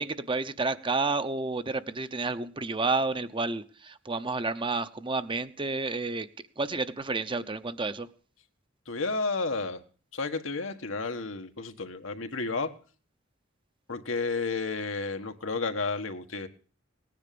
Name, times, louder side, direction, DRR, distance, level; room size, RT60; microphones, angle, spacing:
voice 1, 0.0-6.3 6.6-8.1, right 3 dB, 25° right, 11 dB, 0.8 m, -30 dB
voice 2, 8.8-9.8 10.1-12.8 13.9-16.5, left 3 dB, 80° left, 6 dB, 1.6 m, -32 dB
18.5 x 10.0 x 6.9 m, 0.42 s
head